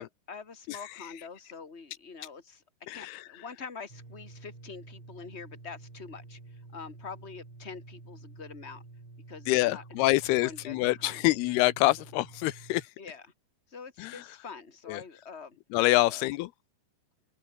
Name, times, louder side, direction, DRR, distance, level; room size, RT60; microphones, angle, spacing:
voice 1, 0.0-2.6 2.9-8.8 9.3-11.3 13.0-13.3 13.7-15.6 16.1-16.2, left 5 dB, 20° left, 2.9 m, -45 dB
voice 2, 2.9-3.2 9.5-12.8 14.0-14.2 14.9-15.0 15.7-16.5, left 19 dB, 85° left, 2.6 m, -26 dB
sound 1, 3.9-12.9, right 3 dB, 30° right, 7.3 m, -50 dB
omnidirectional pair, 4.5 m